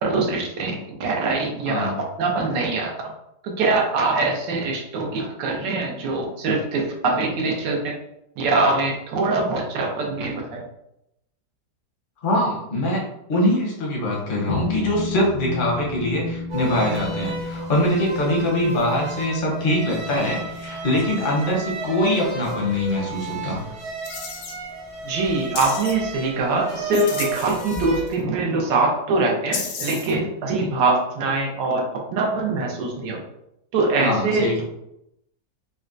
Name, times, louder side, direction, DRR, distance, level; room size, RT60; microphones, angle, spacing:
voice 1, 0.0-3.1 3.4-8.0 8.4-10.7 25.0-33.2 33.7-34.6, right 3 dB, 80° right, 0 dB, 1.3 m, -23 dB
voice 2, 1.7-2.0 12.2-13.0 13.3-23.6 34.0-34.6, left 1 dB, 45° left, -2 dB, 0.7 m, -23 dB
sound 1, 14.5-25.2, left 4 dB, 90° left, 0.3 m, -35 dB
sound 2, 16.5-28.1, right 3 dB, 55° right, 0.8 m, -33 dB
sound 3, 24.0-24.5 25.6-25.9 26.9-28.1 29.5-30.1, left 6 dB, 70° left, 0.8 m, -32 dB
4.0 x 2.2 x 2.5 m, 0.81 s
omnidirectional pair, 1.9 m